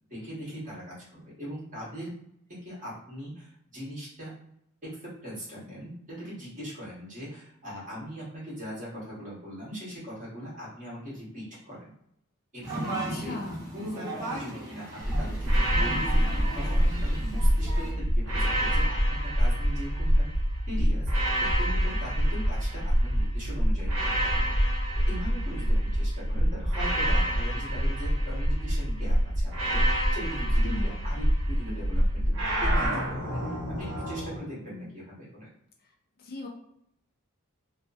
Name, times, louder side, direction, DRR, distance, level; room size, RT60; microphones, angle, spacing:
voice 1, 0.1-2.1 2.6-4.3 5.0-11.9 12.5-13.4 13.7-20.3 20.7-21.1 21.6-24.4 24.7-35.5, equal, 35° right, -7 dB, 1.4 m, -40 dB
sound 1, 12.6-17.9, right 2 dB, 15° right, 0.8 m, -37 dB
voice 2, 12.9-13.7 30.6-31.0 36.2-36.5, left 2 dB, 45° left, 1 dB, 0.4 m, -37 dB
sound 2, 15.0-32.9, equal, 25° left, 0.8 m, -26 dB
sound 3, 15.4-17.6 18.2-20.4 21.1-23.2 23.9-26.0 26.7-28.8 29.5-31.7 32.3-34.4, right 1 dB, 60° right, 1.0 m, -33 dB
3.2 x 2.0 x 2.6 m, 0.74 s
head